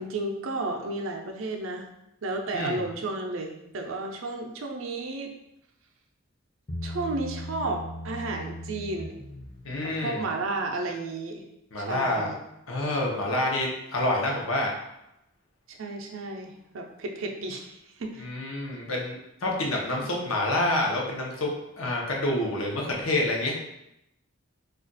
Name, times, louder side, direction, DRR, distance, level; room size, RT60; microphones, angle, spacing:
voice 1, 0.0-1.9 2.2-5.3 6.8-9.2 9.8-11.5 11.8-12.4 15.7-18.3, right 2 dB, 70° right, 2 dB, 0.4 m, -33 dB
Bass guitar, 6.7-10.1, equal, 20° left, 0.5 m, -38 dB
voice 2, 9.6-10.2 11.7-12.3 12.7-14.7 18.2-21.5 21.8-23.6, left 1 dB, 75° left, -1 dB, 0.7 m, -27 dB
2.4 x 2.3 x 3.8 m, 0.84 s
head